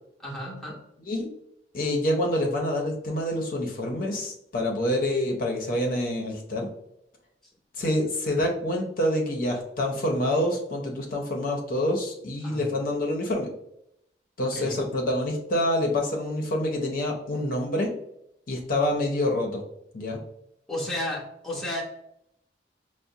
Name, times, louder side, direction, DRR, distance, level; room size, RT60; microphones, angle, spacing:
voice 1, 0.2-0.8 12.4-12.7 14.4-14.8 20.7-21.8, left 1 dB, ahead, -5 dB, 0.7 m, -33 dB
voice 2, 1.7-6.7 7.8-13.5 14.4-17.9 18.5-19.6 19.9-20.2, left 1 dB, 50° left, 0 dB, 0.6 m, -27 dB
4.8 x 2.0 x 2.6 m, 0.78 s
head